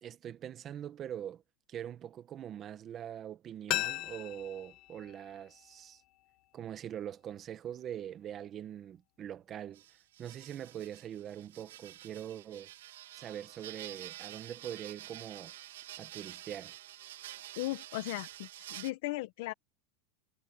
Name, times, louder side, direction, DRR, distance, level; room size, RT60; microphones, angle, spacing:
voice 1, 0.0-1.4 1.7-6.0 6.5-12.7 13.1-15.5 16.0-16.8, right 10 dB, 30° right, 1.4 m, -43 dB
sound 1, 3.7-6.5 6.8-6.9, left 18 dB, 45° left, 1.4 m, -39 dB
sound 2, 9.7-18.9, right 14 dB, 90° right, 2.6 m, -48 dB
voice 2, 17.6-19.5, left 18 dB, 65° left, 1.2 m, -37 dB
supercardioid pair, 145°, 0 cm